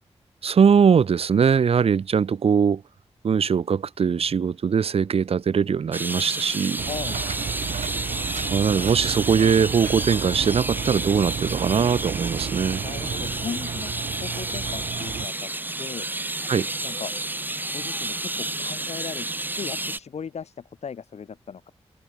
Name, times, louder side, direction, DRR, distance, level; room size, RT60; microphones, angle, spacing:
voice 1, 0.4-2.8 3.2-6.9 8.5-12.8 16.5-16.7, right 6 dB, 60° right, 0.6 m, -21 dB
sound 1, 5.9-20.0, right 2 dB, 15° right, 1.1 m, -31 dB
voice 2, 6.8-7.2 12.7-13.9 14.2-15.5 15.8-16.1 16.8-17.1 17.7-19.3 19.5-21.7, left 6 dB, 75° left, 1.2 m, -37 dB
Engine, 6.8-15.3, right 7 dB, 90° right, 1.5 m, -32 dB
cardioid pair, 70°, 11 cm